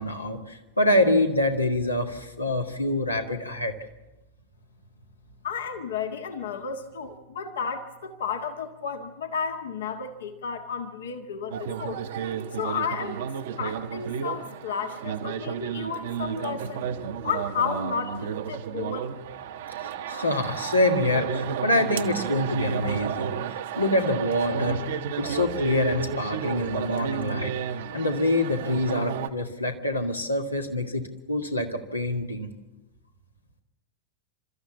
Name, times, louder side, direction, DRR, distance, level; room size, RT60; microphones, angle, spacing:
voice 1, 0.0-3.7 19.8-23.3 23.8-24.8 25.2-27.5 27.9-32.5, left 1 dB, 85° left, 4 dB, 1.9 m, -26 dB
voice 2, 5.4-12.0 12.5-13.3 13.6-16.9 17.2-19.1 19.8-19.9, left 6 dB, 65° left, 6 dB, 1.6 m, -32 dB
sound 1, 11.5-29.3, right 7 dB, 55° right, 1.0 m, -32 dB
29.0 x 14.0 x 7.2 m, 1.1 s
figure-of-eight pair, 90°, 0 cm